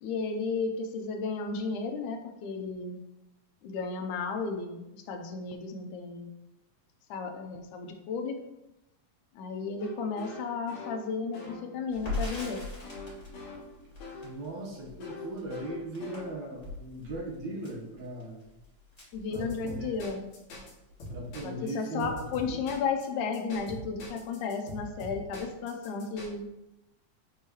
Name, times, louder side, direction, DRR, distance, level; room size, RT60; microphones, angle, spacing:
voice 1, 0.0-3.0 3.6-6.3 7.1-8.4 9.3-12.6 19.1-20.2 21.4-26.5, left 5 dB, 80° left, 4 dB, 2.2 m, -33 dB
sound 1, 9.8-14.4 15.0-16.6 19.3-20.7 21.0-21.7 22.0-23.0 23.3-26.3, left 2 dB, 60° left, 3.2 m, -43 dB
Crackle, 11.9-20.0 20.3-20.4 20.8-21.5, left 2 dB, 15° left, 2.5 m, -41 dB
voice 2, 14.2-18.4 19.3-19.9 21.1-22.1 22.5-22.6, right 1 dB, 70° right, -1 dB, 2.5 m, -38 dB
10.5 x 4.7 x 3.1 m, 0.93 s
omnidirectional pair, 3.6 m